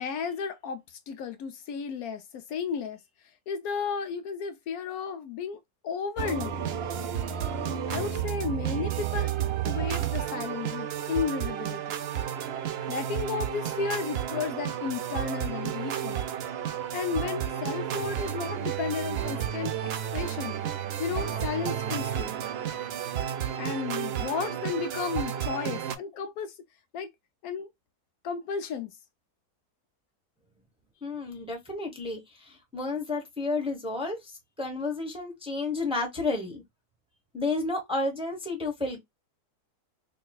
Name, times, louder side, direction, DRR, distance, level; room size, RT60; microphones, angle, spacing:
voice 1, 0.0-6.5 7.9-12.0 12.9-16.2 16.9-20.6 21.0-22.4 23.6-26.6 26.9-27.1 27.4-27.7 28.2-29.0, left 6 dB, 70° left, 1.0 m, -33 dB
sound 1, 6.2-26.0, right 10 dB, 80° right, 0.5 m, -32 dB
voice 2, 31.0-36.6 37.3-39.0, left 3 dB, 5° right, 0.8 m, -31 dB
4.8 x 2.2 x 2.3 m
omnidirectional pair, 1.7 m